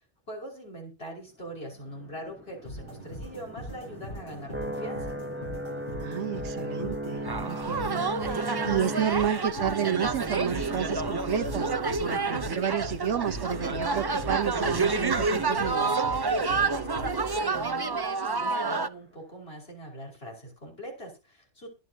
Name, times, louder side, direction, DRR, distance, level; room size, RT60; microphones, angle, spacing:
voice 1, 0.3-5.2 16.8-21.7, equal, 60° left, 5.7 m, -42 dB
sound 1, 1.7-17.9, right 1 dB, 10° right, 1.3 m, -39 dB
sound 2, 2.6-17.9, right 1 dB, 30° left, 4.5 m, -41 dB
voice 2, 6.0-11.7 12.0-16.0, right 8 dB, 90° right, 1.3 m, -31 dB
sound 3, 7.2-18.9, right 4 dB, 25° right, 0.5 m, -29 dB
22.5 x 8.0 x 2.8 m
omnidirectional pair, 1.2 m